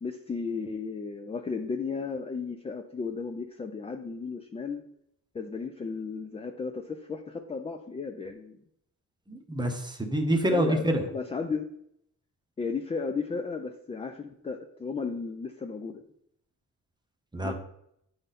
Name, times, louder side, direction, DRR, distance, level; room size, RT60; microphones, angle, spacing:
voice 1, 0.0-4.8 5.3-8.6 10.5-11.7 12.6-16.0 17.4-17.5, left 5 dB, 20° left, 5 dB, 0.3 m, -34 dB
voice 2, 9.3-11.0 17.3-17.5, right 1 dB, 15° right, 4 dB, 0.8 m, -27 dB
9.0 x 3.9 x 4.1 m, 0.74 s
wide cardioid pair, 175°, 34 cm